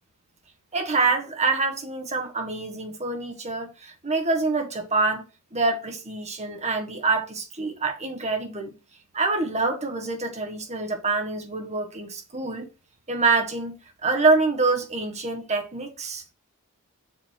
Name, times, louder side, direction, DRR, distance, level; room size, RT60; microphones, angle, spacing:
voice 1, 0.7-5.2 5.5-8.7 9.1-12.7 13.1-16.2, right 3 dB, 30° right, 1.6 m, -26 dB
7.4 x 4.2 x 4.7 m
head